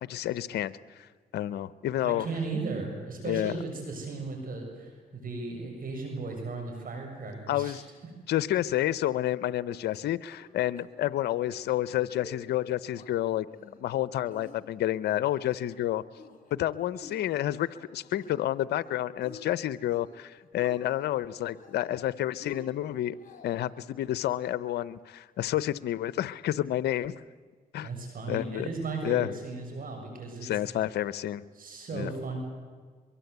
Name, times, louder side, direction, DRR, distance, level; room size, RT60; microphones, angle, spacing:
voice 1, 0.0-2.3 3.2-3.5 7.5-7.8 8.3-13.5 13.8-16.0 16.5-23.1 23.4-27.1 27.7-27.9 28.3-28.7 29.0-29.3 30.4-31.4 31.9-32.1, left 13 dB, 80° left, 18 dB, 0.7 m, -30 dB
voice 2, 2.0-7.8 27.8-30.9 31.5-32.4, right 3 dB, 60° right, 3 dB, 6.6 m, -36 dB
sound 1, 9.9-10.5 10.8-10.9 11.2-11.5 11.9-12.3 12.7-13.1 13.5-14.0 14.3-15.0 15.3-15.8 16.1-16.5 16.9-18.5 18.8-19.4 19.8-20.2 20.4-21.1 21.5-22.0 22.4-23.7, left 3 dB, 50° left, 4.2 m, -51 dB
23.5 x 23.0 x 8.1 m, 1.5 s
supercardioid pair, 65°, 17 cm